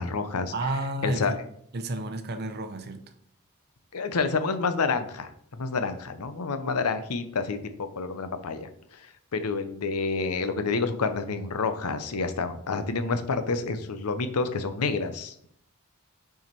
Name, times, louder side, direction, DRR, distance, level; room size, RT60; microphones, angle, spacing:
voice 1, 0.0-0.7 1.0-1.3 3.9-15.6, left 4 dB, 75° left, 10 dB, 0.7 m, -29 dB
voice 2, 0.5-1.4 1.7-3.1, right 1 dB, 45° right, 8 dB, 0.8 m, -31 dB
5.9 x 4.8 x 4.5 m, 0.67 s
head